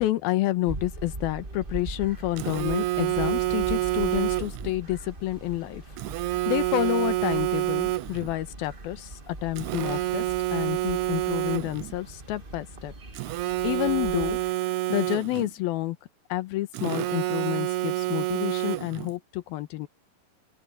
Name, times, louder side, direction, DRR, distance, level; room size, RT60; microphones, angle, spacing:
voice 1, 0.0-5.8 6.2-10.2 10.5-12.9 13.6-14.4 14.9-16.0 16.3-19.9, left 15 dB, 90° left, 2.9 m, -29 dB
sound 1, 0.6-14.5, right 2 dB, 35° right, 0.8 m, -41 dB
Telephone, 2.4-4.7 6.0-8.3 9.6-11.9 13.2-15.5 16.7-19.1, right 17 dB, 85° right, 1.7 m, -28 dB
open air
omnidirectional pair, 4.2 m